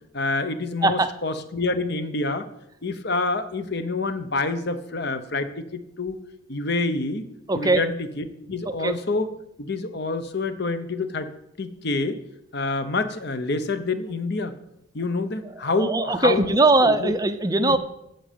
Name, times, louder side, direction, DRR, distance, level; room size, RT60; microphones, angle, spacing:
voice 1, 0.1-2.5 2.8-6.2 6.5-7.2 7.5-9.3 9.6-11.3 11.6-12.2 12.5-14.5 14.9-16.4 16.8-17.1 17.6-17.8, left 3 dB, 50° left, 10 dB, 0.9 m, -27 dB
voice 2, 7.5-7.8 8.6-8.9 15.6-17.8, right 2 dB, 20° right, 9 dB, 0.6 m, -20 dB
7.8 x 7.5 x 8.6 m, 0.82 s
head